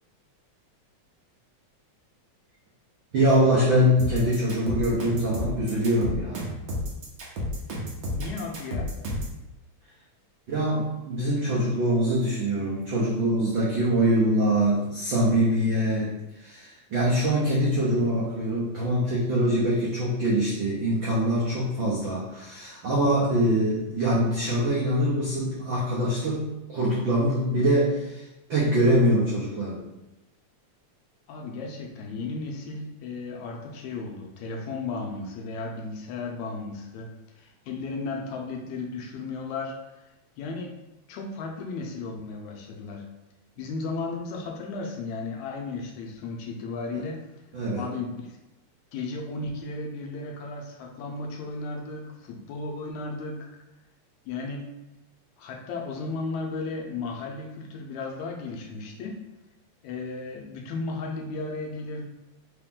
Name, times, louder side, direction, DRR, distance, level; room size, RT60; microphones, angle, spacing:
voice 1, 3.1-6.5 10.5-29.8 47.5-47.9, equal, 80° right, -6 dB, 1.0 m, -24 dB
sound 1, 4.0-9.4, left 1 dB, 65° right, 1.3 m, -31 dB
voice 2, 8.1-8.9 31.3-40.0 40.4-40.7 41.1-43.1 43.6-47.2 47.7-48.4 48.9-53.5 54.3-54.7 55.4-59.2 59.8-62.0, left 3 dB, 80° left, 1 dB, 1.9 m, -35 dB
4.7 x 2.9 x 3.6 m, 0.99 s
omnidirectional pair, 3.4 m